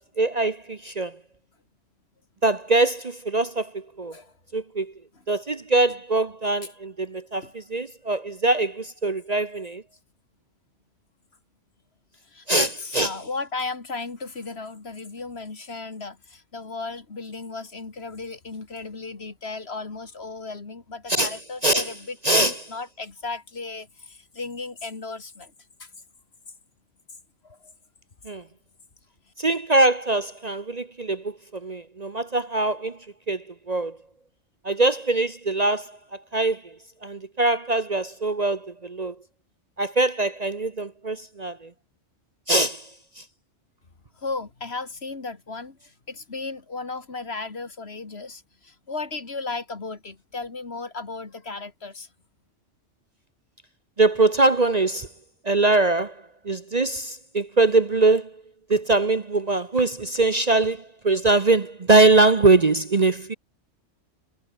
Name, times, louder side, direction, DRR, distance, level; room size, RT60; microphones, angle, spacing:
voice 1, 0.2-1.2 2.4-4.1 4.5-4.9 5.3-9.8 12.5-12.7 12.9-13.1 21.1-21.4 21.6-21.9 22.2-22.6 28.2-28.4 29.4-33.0 33.3-34.0 34.6-36.8 37.0-39.2 39.8-41.7 42.5-43.2 54.0-55.1 55.4-58.4 58.7-63.3, right 2 dB, 35° right, 1.0 m, -22 dB
voice 2, 12.3-25.5 25.8-25.9 27.4-27.7 44.2-52.1, left 3 dB, 55° left, 2.5 m, -35 dB
omnidirectional pair, 1.3 m